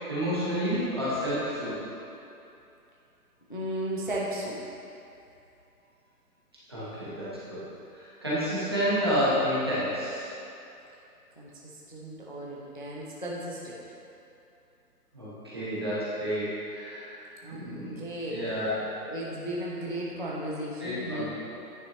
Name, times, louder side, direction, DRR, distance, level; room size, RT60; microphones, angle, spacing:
voice 1, 0.1-1.8 6.7-7.6 8.2-10.3 15.1-17.2 17.5-17.9 18.3-18.9 20.8-21.3, equal, 15° right, -11 dB, 0.8 m, -29 dB
voice 2, 3.5-4.7 11.4-13.8 17.4-17.6 18.0-18.5 19.1-21.2, right 1 dB, 35° left, -4 dB, 0.4 m, -35 dB
9.4 x 5.5 x 2.9 m, 2.7 s
hypercardioid pair, 175°, 47 cm